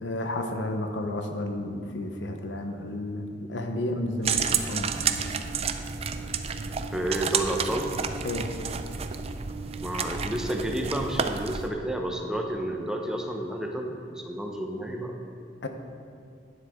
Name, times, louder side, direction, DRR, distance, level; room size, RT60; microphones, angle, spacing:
voice 1, 0.0-5.0 8.2-8.5 15.6-15.7, left 1 dB, 85° left, 5 dB, 0.9 m, -31 dB
sound 1, 4.2-11.7, right 6 dB, 35° right, 0.4 m, -30 dB
voice 2, 6.9-7.9 9.8-15.1, right 1 dB, 5° right, 1 dB, 0.8 m, -31 dB
11.0 x 9.7 x 3.7 m, 2.3 s
head